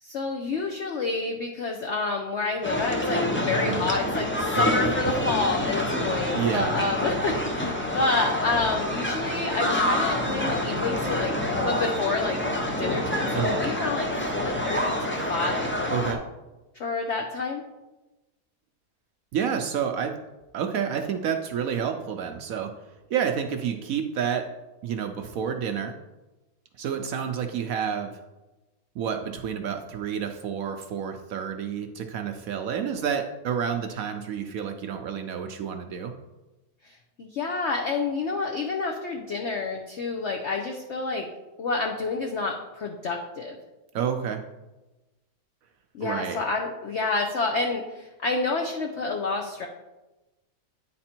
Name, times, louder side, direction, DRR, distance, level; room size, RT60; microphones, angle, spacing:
voice 1, 0.0-4.3 4.6-11.3 11.6-12.4 12.8-14.1 14.3-15.7 16.7-17.6 36.8-41.3 41.6-43.5 45.9-49.7, left 3 dB, 55° left, 2 dB, 0.8 m, -29 dB
sound 1, 2.6-16.1, left 1 dB, 20° left, 0.3 m, -27 dB
voice 2, 6.3-6.8 13.3-13.6 15.9-16.2 19.3-20.2 20.5-22.7 23.1-24.5 24.8-26.0 26.8-28.2 29.0-36.1 43.9-44.4 46.0-46.4, right 7 dB, 70° right, 6 dB, 0.9 m, -29 dB
9.5 x 4.3 x 4.3 m, 1.1 s
omnidirectional pair, 1.8 m